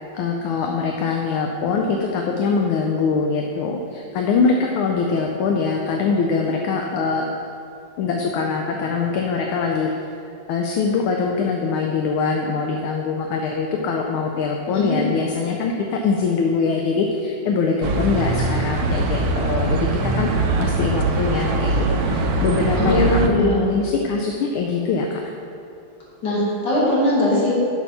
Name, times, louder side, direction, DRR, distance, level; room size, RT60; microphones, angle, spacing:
voice 1, 0.1-7.5 8.0-9.9 10.5-25.2, left 4 dB, 80° left, 1 dB, 1.5 m, -23 dB
voice 2, 14.7-15.1 22.8-23.7 26.2-27.5, left 1 dB, 55° left, -6 dB, 2.7 m, -20 dB
sound 1, 17.8-23.3, right 2 dB, 75° right, 0.8 m, -22 dB
8.5 x 5.2 x 5.5 m, 2.5 s
omnidirectional pair, 2.4 m